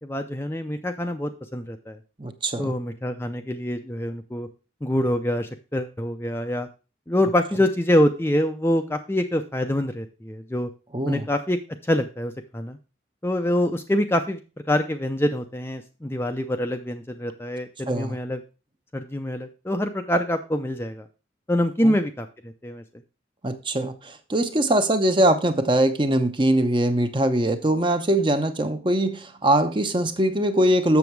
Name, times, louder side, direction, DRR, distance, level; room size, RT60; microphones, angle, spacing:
voice 1, 0.0-2.0 2.6-4.5 4.8-6.7 7.1-10.7 11.1-11.6 11.8-12.8 13.2-14.4 14.7-18.4 18.9-21.1 21.5-22.8, left 1 dB, 10° left, 0.5 m, -25 dB
voice 2, 2.2-2.7 10.9-11.3 17.9-18.2 21.8-22.0 23.4-31.0, right 1 dB, 25° right, 0.8 m, -22 dB
7.1 x 6.9 x 4.6 m
head